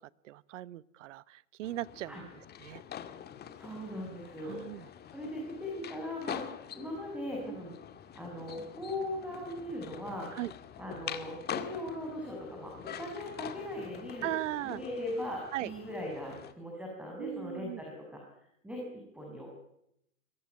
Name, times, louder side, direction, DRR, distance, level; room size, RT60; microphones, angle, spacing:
voice 1, 0.2-2.3 2.6-2.8 4.4-4.9 7.5-7.6 10.3-10.5 14.2-14.8 15.5-15.7 17.2-17.8, right 15 dB, 65° right, 20 dB, 1.1 m, -38 dB
sound 1, 1.6-16.5, left 9 dB, 25° left, 2.0 m, -45 dB
voice 2, 3.5-7.8 8.1-10.3 10.8-14.3 14.6-18.2 18.6-19.5, left 1 dB, 5° right, -1 dB, 6.7 m, -39 dB
23.5 x 18.0 x 9.4 m, 0.78 s
hypercardioid pair, 120°, 40 cm